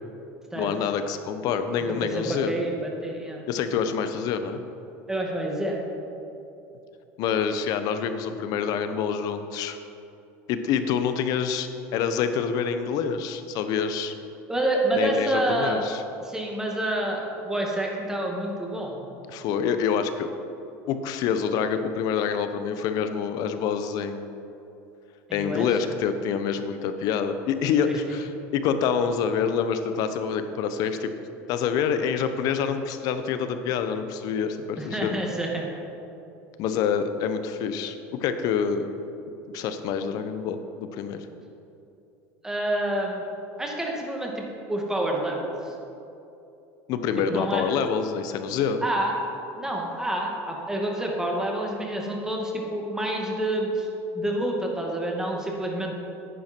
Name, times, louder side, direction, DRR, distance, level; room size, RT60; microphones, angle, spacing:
voice 1, 0.5-2.5 3.5-4.6 7.2-9.8 10.5-14.1 15.0-16.0 19.3-20.3 20.9-24.3 25.3-31.1 31.5-35.2 36.6-38.9 39.5-41.3 46.9-48.8, left 7 dB, 60° left, 9 dB, 0.9 m, -26 dB
voice 2, 2.0-3.4 5.1-5.8 14.5-15.8 16.2-19.0 25.3-25.7 27.9-28.2 34.8-35.7 42.4-43.2 43.6-45.7 47.3-47.6 48.8-49.2 49.6-53.9 54.1-55.9, right 1 dB, 10° right, -1 dB, 2.2 m, -28 dB
10.5 x 10.0 x 4.6 m, 2.8 s
supercardioid pair, 100°, 7 cm